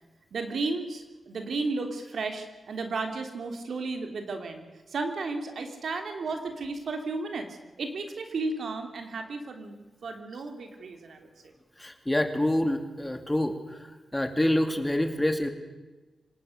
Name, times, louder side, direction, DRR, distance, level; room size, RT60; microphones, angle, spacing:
voice 1, 0.3-11.3, right 3 dB, 75° right, 5 dB, 3.0 m, -34 dB
voice 2, 11.8-13.6 14.1-15.5, left 1 dB, 10° left, 7 dB, 2.4 m, -26 dB
26.5 x 18.5 x 6.6 m, 1.2 s
wide cardioid pair, 90°, 0 cm